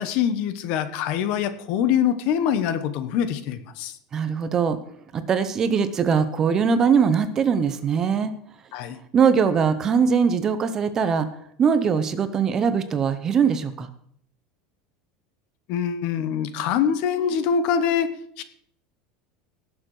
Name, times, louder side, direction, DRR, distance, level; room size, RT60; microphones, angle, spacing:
voice 1, 0.0-3.9 8.7-9.0 15.7-18.4, left 8 dB, 50° left, 12 dB, 1.1 m, -24 dB
voice 2, 4.1-4.8 5.1-8.3 9.1-11.3 11.6-13.9, right 6 dB, 25° right, 11 dB, 0.8 m, -21 dB
18.5 x 6.8 x 4.8 m, 0.65 s
supercardioid pair, 165°, 2 cm